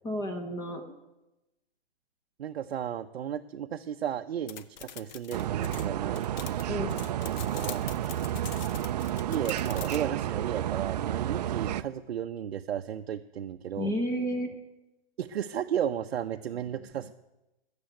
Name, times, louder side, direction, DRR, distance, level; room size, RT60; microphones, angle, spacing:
voice 1, 0.0-1.0 6.7-6.9 13.8-14.5, equal, 10° left, 5 dB, 0.8 m, -31 dB
voice 2, 2.4-6.7 7.3-7.8 9.3-13.9 15.2-17.1, right 9 dB, 85° right, 5 dB, 0.6 m, -34 dB
sound 1, 4.5-10.0, left 9 dB, 45° left, 0.7 m, -43 dB
sound 2, 5.3-11.8, right 11 dB, 45° right, 0.5 m, -31 dB
13.0 x 7.0 x 9.2 m, 1.0 s
hypercardioid pair, 150°, 30 cm